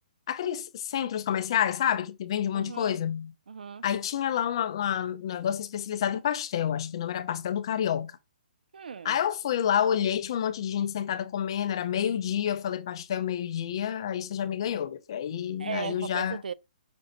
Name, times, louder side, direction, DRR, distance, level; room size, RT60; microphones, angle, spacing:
voice 1, 0.3-3.3 3.8-8.1 9.0-16.4, left 9 dB, 30° left, 0.4 m, -29 dB
voice 2, 2.5-3.0 3.5-3.8 8.7-9.2 15.6-16.5, right 6 dB, 80° right, 0.4 m, -37 dB
5.2 x 2.6 x 3.9 m
hypercardioid pair, 170°, 5 cm